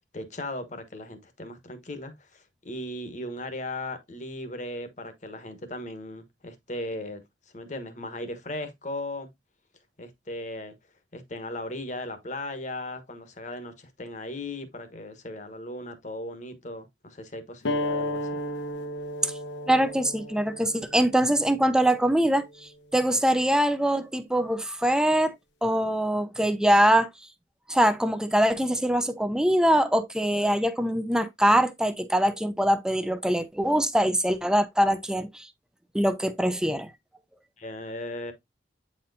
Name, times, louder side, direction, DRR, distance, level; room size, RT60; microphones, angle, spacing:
voice 1, 0.1-7.2 7.5-9.3 10.0-10.7 11.1-18.3 37.6-38.3, left 1 dB, 40° left, 1.1 m, -37 dB
D open string, 17.6-22.8, left 1 dB, 75° left, 0.9 m, -34 dB
voice 2, 19.7-22.5 22.9-25.3 25.6-27.1 27.7-35.5 35.9-36.9, right 1 dB, 5° right, 0.5 m, -23 dB
8.6 x 4.2 x 2.6 m
head